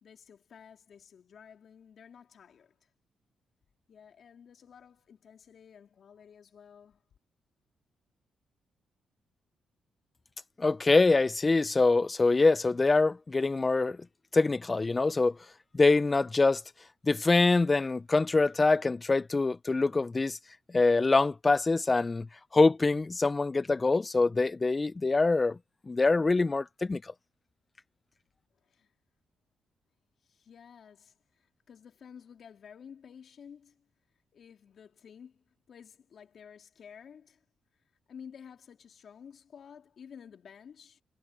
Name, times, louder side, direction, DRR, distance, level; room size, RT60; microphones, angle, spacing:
voice 1, 0.0-2.8 3.9-7.0 28.6-28.9 30.2-33.9 34.3-37.4 38.1-41.0, left 7 dB, 60° left, 3.7 m, -52 dB
voice 2, 10.6-14.0 14.3-15.4 15.7-16.6 17.0-20.4 20.7-22.3 22.5-25.6 25.9-27.1, left 3 dB, 30° left, 0.6 m, -24 dB
supercardioid pair, 60°, 0 cm